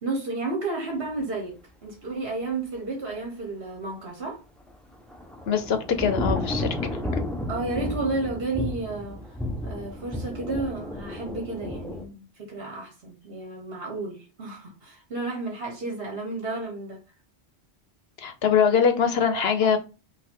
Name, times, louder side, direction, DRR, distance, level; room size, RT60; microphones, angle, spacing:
voice 1, 0.0-4.4 7.5-17.0 19.3-19.7, right 3 dB, 65° right, 1.3 m, -32 dB
Thunder / Rain, 4.7-12.1, left 1 dB, ahead, 0.5 m, -32 dB
voice 2, 5.5-6.7 7.1-7.2 18.2-19.8, left 7 dB, 70° left, 1.0 m, -22 dB
5.5 x 2.4 x 3.7 m
omnidirectional pair, 1.1 m